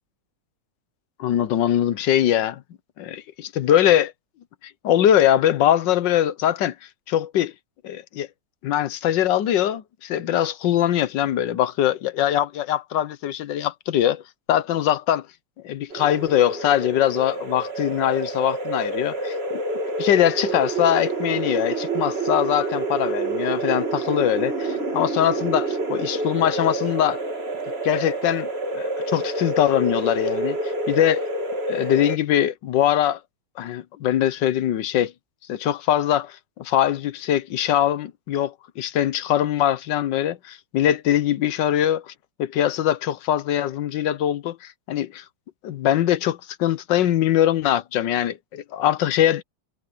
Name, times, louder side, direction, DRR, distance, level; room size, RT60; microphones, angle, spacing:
voice 1, 1.2-2.6 3.0-4.1 4.6-6.7 7.1-7.5 7.8-8.3 8.6-14.2 14.5-15.3 15.6-19.6 20.0-27.2 27.8-31.2 31.7-33.2 33.6-35.1 35.5-42.1 42.4-45.2 45.6-49.4, left 11 dB, 85° left, 1.6 m, -22 dB
sound 1, 15.9-32.2, right 2 dB, 35° right, 2.7 m, -28 dB
omnidirectional pair, 1.9 m